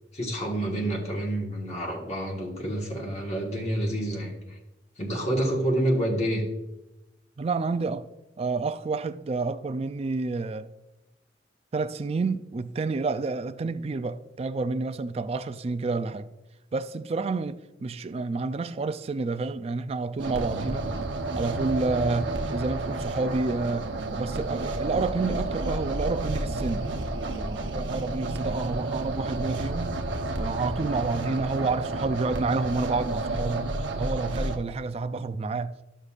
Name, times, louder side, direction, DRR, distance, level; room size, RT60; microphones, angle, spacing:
voice 1, 0.1-4.6 5.0-6.4, right 1 dB, 35° left, 1.4 m, -28 dB
voice 2, 7.4-8.1 8.4-10.7 11.7-16.3 16.7-20.9 21.4-26.9 27.3-30.0 30.4-33.7 34.0-35.8, right 3 dB, 35° right, 0.3 m, -29 dB
sound 1, 20.2-34.6, right 2 dB, 90° right, 0.8 m, -31 dB
12.5 x 6.5 x 2.4 m
head